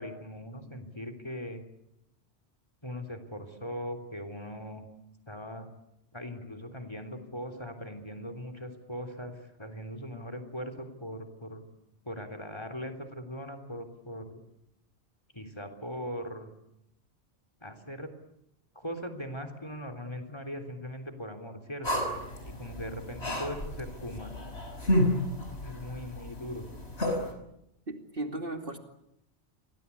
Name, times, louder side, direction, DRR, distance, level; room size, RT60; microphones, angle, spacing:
voice 1, 0.0-1.6 2.8-4.8 5.3-5.7 6.1-11.6 12.0-14.4 15.3-16.5 17.6-18.1 18.8-22.1 22.4-24.3 25.6-26.7, equal, 25° left, 9 dB, 3.5 m, -40 dB
sound 1, 21.8-27.3, left 1 dB, 65° left, 6.1 m, -31 dB
voice 2, 27.9-28.8, right 2 dB, 50° right, 5 dB, 2.9 m, -36 dB
30.0 x 23.5 x 8.5 m, 0.81 s
omnidirectional pair, 1.2 m